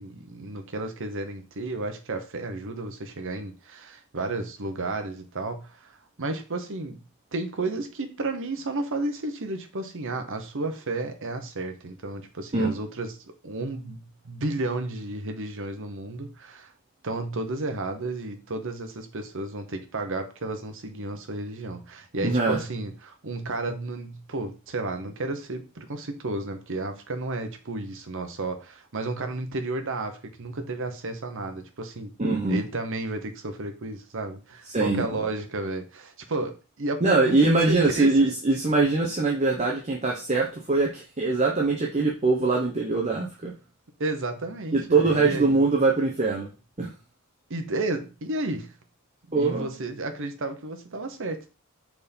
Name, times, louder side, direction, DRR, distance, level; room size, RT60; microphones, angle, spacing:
voice 1, 0.0-7.0 7.3-16.7 17.0-32.1 32.5-38.3 44.0-45.6 47.5-48.7 49.3-51.5, right 2 dB, 60° right, 1.0 m, -32 dB
voice 2, 22.2-22.6 32.2-32.6 34.7-35.1 37.0-43.5 44.7-46.5 46.8-46.9 49.3-49.7, right 3 dB, 30° right, 0.9 m, -22 dB
4.6 x 4.2 x 5.2 m
head